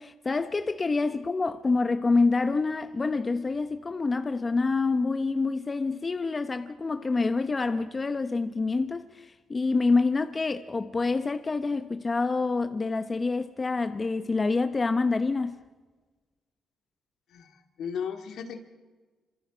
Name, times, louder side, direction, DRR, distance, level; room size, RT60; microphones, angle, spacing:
voice 1, 0.0-15.6, left 3 dB, 30° left, 0.9 m, -27 dB
voice 2, 17.3-18.6, left 7 dB, 70° left, 2.2 m, -36 dB
27.5 x 25.5 x 5.1 m
cardioid pair, 90°, 0 cm